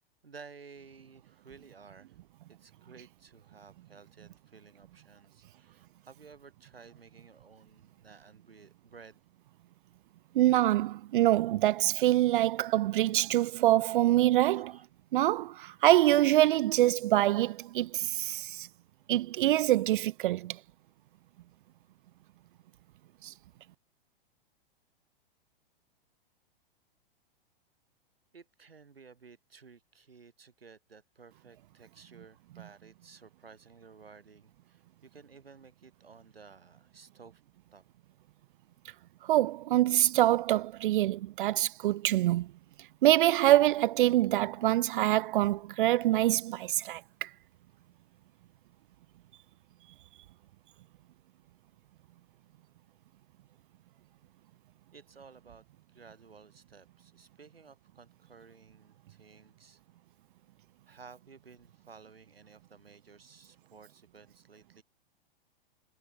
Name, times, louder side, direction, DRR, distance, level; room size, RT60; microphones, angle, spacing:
voice 1, 0.2-2.2 2.5-9.2 14.5-14.9 28.3-37.4 37.7-37.8 54.9-55.7 55.9-59.8 60.8-64.8, right 5 dB, 90° right, 3.2 m, -55 dB
voice 2, 10.3-14.7 15.1-18.7 19.1-20.6 23.2-23.3 39.2-42.5 43.0-47.3, right 14 dB, 60° right, 0.5 m, -25 dB
hypercardioid pair, 110°, 29 cm